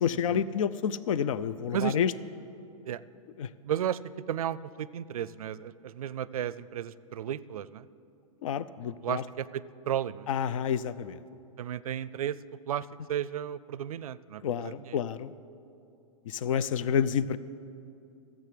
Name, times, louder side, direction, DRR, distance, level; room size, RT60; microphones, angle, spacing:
voice 1, 0.0-2.1 3.4-3.5 8.4-9.2 10.3-11.2 14.4-15.3 16.3-17.4, left 8 dB, 70° left, 17 dB, 0.5 m, -29 dB
voice 2, 3.6-4.0 4.3-7.9 9.0-10.3 11.6-12.4 12.7-15.0, right 10 dB, 85° right, 18 dB, 0.5 m, -33 dB
13.5 x 7.7 x 7.6 m, 2.7 s
hypercardioid pair, 140°, 18 cm